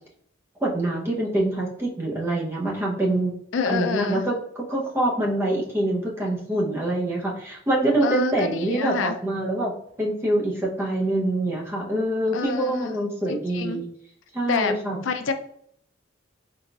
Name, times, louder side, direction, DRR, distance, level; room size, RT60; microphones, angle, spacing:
voice 1, 0.6-3.3 3.7-9.7 10.0-13.9 14.3-15.0, right 1 dB, 10° right, -3 dB, 0.7 m, -25 dB
voice 2, 3.5-4.2 8.0-9.2 12.3-12.9 13.3-13.8 14.5-14.8 15.0-15.3, left 5 dB, 75° left, 8 dB, 0.4 m, -27 dB
3.9 x 3.9 x 2.3 m, 0.68 s
head